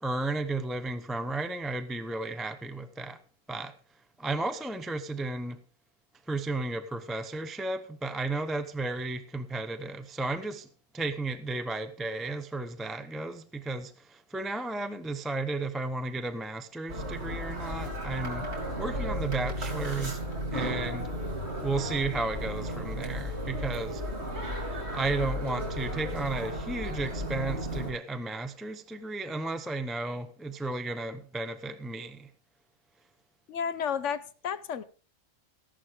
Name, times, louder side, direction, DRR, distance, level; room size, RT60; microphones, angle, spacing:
voice 1, 0.0-3.2 3.5-3.7 4.2-5.6 6.3-10.7 10.9-18.5 18.8-20.2 20.5-21.1 21.6-24.0 24.9-32.3, right 2 dB, ahead, 0.6 m, -33 dB
sound 1, 16.9-27.9, equal, 55° right, 3.7 m, -34 dB
voice 2, 33.5-34.8, left 7 dB, 70° left, 1.1 m, -32 dB
15.0 x 11.5 x 3.7 m
omnidirectional pair, 1.4 m